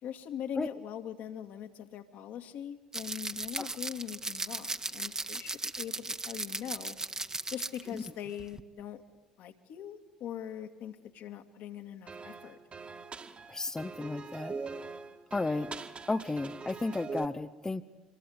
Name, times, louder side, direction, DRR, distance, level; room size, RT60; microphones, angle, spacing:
voice 1, 0.0-7.0 7.5-9.0 9.4-12.6, left 9 dB, 60° left, 5 dB, 2.3 m, -42 dB
sound 1, 2.9-8.1 8.4-8.6, right 2 dB, 20° right, 1.6 m, -37 dB
sound 2, 12.1-17.3, right 4 dB, 35° right, 2.3 m, -42 dB
voice 2, 13.5-14.6 15.3-15.7 16.1-17.8, left 3 dB, 15° left, 8 dB, 1.0 m, -33 dB
26.5 x 22.5 x 9.8 m, 1.2 s
figure-of-eight pair, 55°, 3 cm